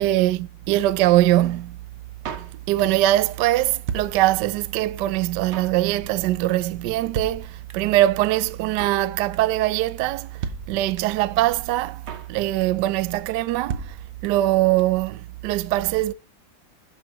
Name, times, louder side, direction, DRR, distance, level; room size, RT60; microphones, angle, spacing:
voice 1, 0.0-1.8 2.4-14.0 14.2-16.1, right 15 dB, 75° right, 1.0 m, -22 dB
Drum kit, 2.2-3.1 3.3-3.4 3.6-4.7 5.0-5.1 5.2-5.8 6.1-6.3 6.6-6.7 6.9-7.0 7.1-8.0 8.2-8.3 8.5-9.1 9.3-9.6 9.9-10.0 10.2-10.3 10.4-11.3 11.5-11.6 11.8-12.3 12.6-12.9 13.1-13.2 13.4-13.5 13.7-14.5 14.8-14.9 15.1-15.2, right 6 dB, 55° right, 0.8 m, -33 dB
11.5 x 5.7 x 2.9 m
omnidirectional pair, 2.2 m